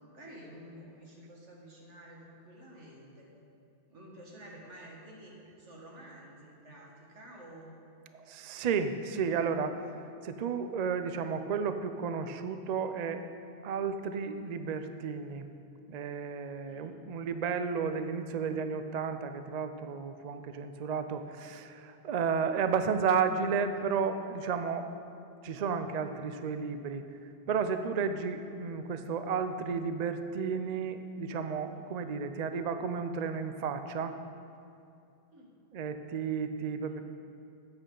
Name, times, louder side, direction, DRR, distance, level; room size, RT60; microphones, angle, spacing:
voice 1, 0.1-3.3 3.9-7.7 16.7-16.9 32.0-32.2 35.3-35.5 36.9-37.0, right 1 dB, 75° right, -2 dB, 2.0 m, -51 dB
voice 2, 8.1-9.8 10.2-13.2 13.6-15.5 15.9-24.9 25.4-27.0 27.5-34.2 35.7-37.0, right 6 dB, 55° right, 8 dB, 0.4 m, -32 dB
13.5 x 8.2 x 3.8 m, 2.7 s
omnidirectional pair, 1.2 m